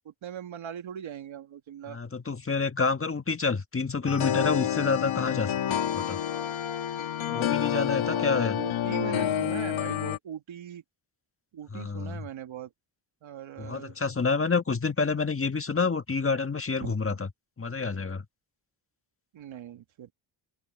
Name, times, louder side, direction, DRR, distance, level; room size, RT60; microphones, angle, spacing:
voice 1, 0.0-2.0 7.6-10.8 11.5-12.7 13.2-14.0 16.8-16.9 19.3-20.1, right 10 dB, 85° right, 1.9 m, -40 dB
voice 2, 1.8-6.2 7.3-8.6 11.7-12.3 13.6-17.3 17.6-18.2, left 4 dB, 30° left, 1.6 m, -28 dB
sound 1, 4.1-10.2, left 10 dB, 85° left, 1.6 m, -29 dB
open air
cardioid pair, 80°, 46 cm